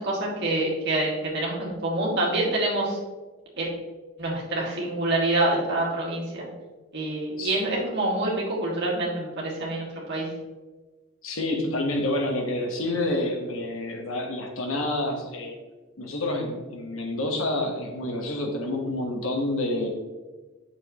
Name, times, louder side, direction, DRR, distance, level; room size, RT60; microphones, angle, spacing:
voice 1, 0.0-3.0 3.6-3.7 4.2-6.4 6.9-10.3, right 2 dB, 50° right, -4 dB, 2.1 m, -26 dB
voice 2, 11.2-15.5 16.0-19.9, left 1 dB, 70° left, 2 dB, 1.3 m, -28 dB
7.8 x 6.6 x 3.1 m, 1.2 s
head